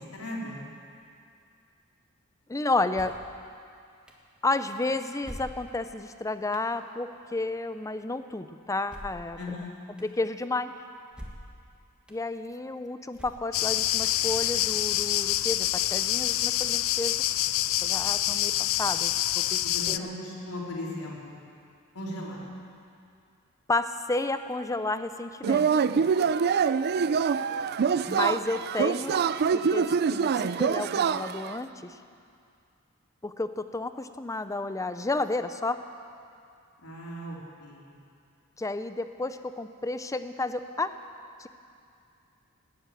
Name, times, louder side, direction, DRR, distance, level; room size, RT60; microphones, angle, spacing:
voice 1, 0.1-0.6 9.4-9.7 19.6-21.3 21.9-22.4 36.8-37.8, left 1 dB, 85° left, -4 dB, 3.5 m, -37 dB
voice 2, 2.5-3.2 4.4-9.4 10.0-10.7 12.1-17.2 17.8-19.6 19.9-20.1 23.7-25.8 28.1-29.2 29.5-32.0 33.2-35.8 38.6-40.9 41.4-41.5, left 2 dB, 15° left, 10 dB, 0.5 m, -31 dB
sound 1, 2.9-3.3 4.1-4.2 5.2-5.9 6.5-6.7 8.9-9.3 10.0-10.1 11.1-11.6 12.1-12.2 13.1-13.7, equal, 5° right, 1.5 m, -44 dB
sound 2, 13.5-20.0, left 14 dB, 65° left, 0.4 m, -26 dB
Yell / Cheering, 25.4-31.6, right 6 dB, 45° right, 0.4 m, -25 dB
18.5 x 8.0 x 9.2 m, 2.4 s
head